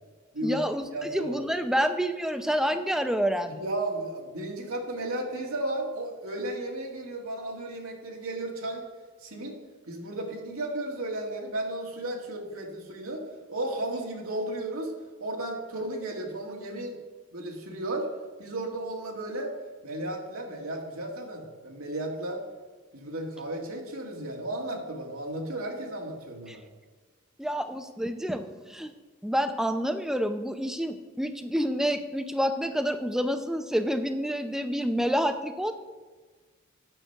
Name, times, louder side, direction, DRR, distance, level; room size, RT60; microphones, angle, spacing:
voice 1, 0.4-3.6 26.5-26.6 27.4-28.9 29.2-35.7, equal, ahead, 8 dB, 0.5 m, -28 dB
voice 2, 0.9-1.4 3.5-8.8 9.2-9.6 9.9-13.2 13.5-14.9 15.2-17.0 17.3-18.1 18.4-19.5 19.8-22.4 22.9-26.6, right 1 dB, 80° right, 0 dB, 2.0 m, -34 dB
9.0 x 6.1 x 6.7 m, 1.4 s
head